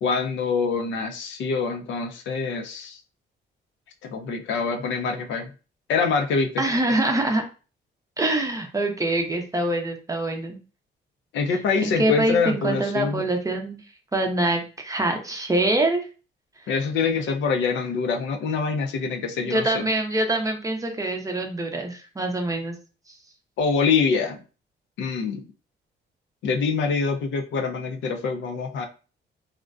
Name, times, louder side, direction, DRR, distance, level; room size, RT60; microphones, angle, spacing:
voice 1, 0.0-3.0 4.0-5.5 5.9-6.5 11.3-13.2 16.7-19.9 23.6-24.4 25.0-25.4 26.4-28.9, left 5 dB, 75° left, 4 dB, 0.5 m, -25 dB
voice 2, 6.6-7.4 8.2-10.6 11.5-13.8 14.1-16.1 19.4-22.8, right 2 dB, 15° right, 4 dB, 0.5 m, -25 dB
2.5 x 2.1 x 2.4 m, 0.35 s
cardioid pair, 90°, 20 cm